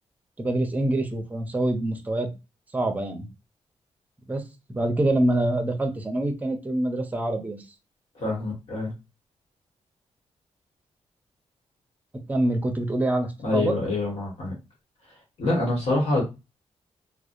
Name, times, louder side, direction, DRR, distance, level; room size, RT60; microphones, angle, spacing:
voice 1, 0.4-2.3 2.7-3.3 4.3-4.4 4.7-7.6 12.3-13.7, right 1 dB, 15° right, 5 dB, 0.6 m, -25 dB
voice 2, 8.2-8.9 13.4-14.5 15.4-16.2, left 2 dB, 65° left, -3 dB, 1.2 m, -25 dB
2.7 x 2.1 x 2.5 m, 0.26 s
cardioid pair, 90°, 12 cm